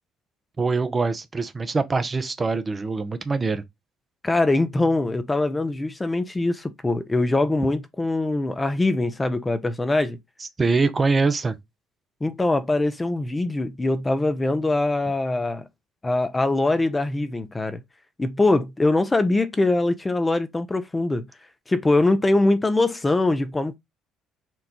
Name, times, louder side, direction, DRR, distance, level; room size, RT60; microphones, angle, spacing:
voice 1, 0.6-3.6 10.4-11.6, right 4 dB, 30° right, 0.8 m, -23 dB
voice 2, 4.2-10.2 12.2-15.6 16.0-17.8 18.2-21.3 21.7-23.8, left 2 dB, 20° left, 0.8 m, -22 dB
4.5 x 2.6 x 4.3 m
supercardioid pair, 70°, 0 cm